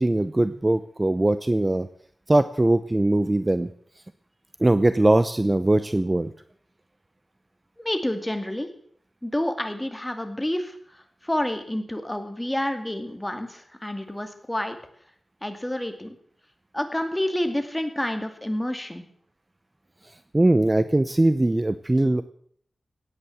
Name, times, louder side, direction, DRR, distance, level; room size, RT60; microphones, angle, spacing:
voice 1, 0.0-1.9 2.3-3.7 4.6-6.3 20.3-22.2, right 1 dB, 25° right, 13 dB, 0.7 m, -21 dB
voice 2, 7.8-8.7 9.2-14.8 15.4-16.2 16.7-19.0, left 1 dB, 10° left, 7 dB, 2.5 m, -29 dB
17.0 x 9.9 x 7.4 m, 0.62 s
wide cardioid pair, 75°, 0 cm